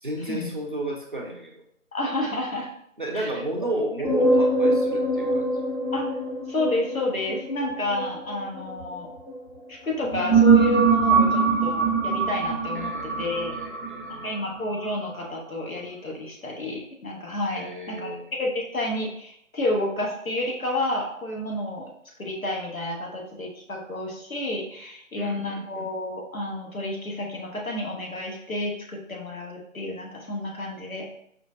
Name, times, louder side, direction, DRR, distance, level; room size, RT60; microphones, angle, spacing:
voice 1, 0.0-1.6 3.0-5.5 12.7-14.4 17.5-18.3 25.1-25.9, right 1 dB, 40° right, 0 dB, 0.4 m, -33 dB
voice 2, 1.9-2.7 3.1-3.3 5.9-6.2 6.5-9.1 9.7-12.9 13.2-13.5 14.2-18.1 18.4-21.9 22.2-31.1, left 1 dB, 90° left, -1 dB, 1.1 m, -30 dB
sound 1, 4.0-9.3 9.9-14.9, right 4 dB, 30° left, 0.8 m, -23 dB
5.0 x 2.1 x 2.5 m, 0.71 s
figure-of-eight pair, 155°, 40 cm